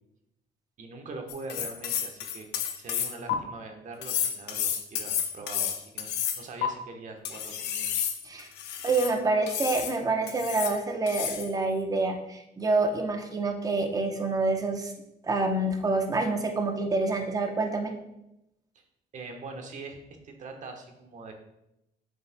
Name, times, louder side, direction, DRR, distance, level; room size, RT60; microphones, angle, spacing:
voice 1, 0.8-2.5 2.8-7.9 18.7-18.8 19.1-20.0 20.2-21.3, right 3 dB, 45° right, 4 dB, 1.1 m, -42 dB
sound 1, 1.3-3.3 4.0-6.7 7.2-9.1 9.5-9.9 10.3-10.8 11.1-11.5, left 9 dB, 85° left, 0.8 m, -31 dB
voice 2, 8.8-14.9 15.2-17.9, right 3 dB, 20° right, 4 dB, 0.8 m, -27 dB
8.0 x 5.4 x 2.2 m, 0.86 s
cardioid pair, 110°, 17 cm